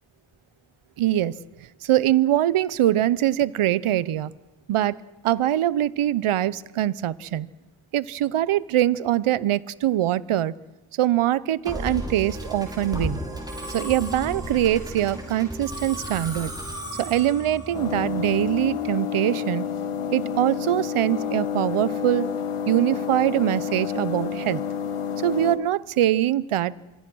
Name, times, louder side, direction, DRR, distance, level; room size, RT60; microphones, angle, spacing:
voice 1, 1.0-1.4 1.8-4.3 4.7-5.0 5.2-7.5 7.9-10.5 10.9-13.2 13.7-16.5 17.0-19.7 20.1-22.3 22.7-24.6 25.2-26.7, right 12 dB, 80° right, 20 dB, 0.8 m, -23 dB
Musical instrument, 11.6-19.0, equal, 10° right, 5.6 m, -34 dB
sound 1, 17.7-25.6, left 8 dB, 80° left, 2.0 m, -29 dB
26.0 x 22.0 x 6.2 m, 1.1 s
cardioid pair, 65°, 49 cm